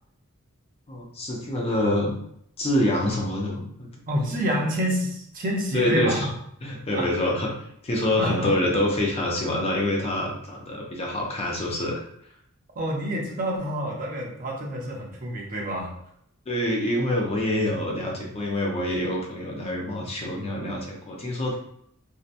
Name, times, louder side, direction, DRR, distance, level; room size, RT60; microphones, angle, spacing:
voice 1, 0.9-2.1 2.6-3.9 4.2-4.4 5.7-6.3 6.6-7.5 7.8-12.0 16.5-21.5, left 1 dB, 30° left, -1 dB, 0.5 m, -26 dB
voice 2, 4.1-6.3 6.9-7.1 8.2-8.5 12.8-15.9, equal, 40° right, -1 dB, 0.6 m, -28 dB
2.6 x 2.1 x 2.5 m, 0.71 s
head